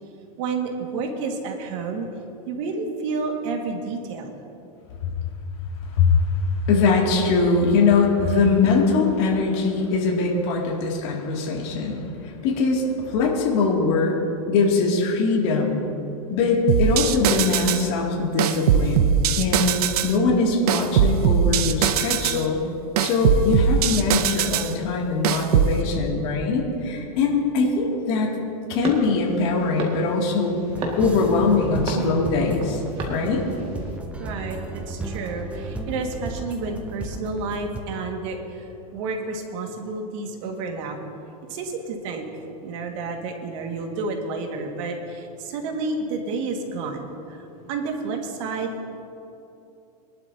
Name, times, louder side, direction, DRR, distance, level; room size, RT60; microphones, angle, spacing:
voice 1, 0.4-2.1 2.4-4.3 34.2-41.0 41.5-42.3 42.6-48.7, right 4 dB, 55° right, 3 dB, 1.9 m, -30 dB
voice 2, 6.7-14.2 14.5-15.7 16.3-22.6 23.0-28.3 28.7-30.6 31.0-32.8 33.1-33.5, left 4 dB, 45° left, -2 dB, 2.5 m, -22 dB
sound 1, 16.7-17.9 18.4-20.1 20.7-22.4 23.0-24.7 25.2-25.8, right 8 dB, 75° right, 0.7 m, -20 dB
sound 2, 28.8-34.0, right 1 dB, 25° right, 1.9 m, -34 dB
sound 3, 30.7-37.8, right 2 dB, 5° right, 0.7 m, -34 dB
22.5 x 11.5 x 2.8 m, 2.9 s
supercardioid pair, 155°, 20 cm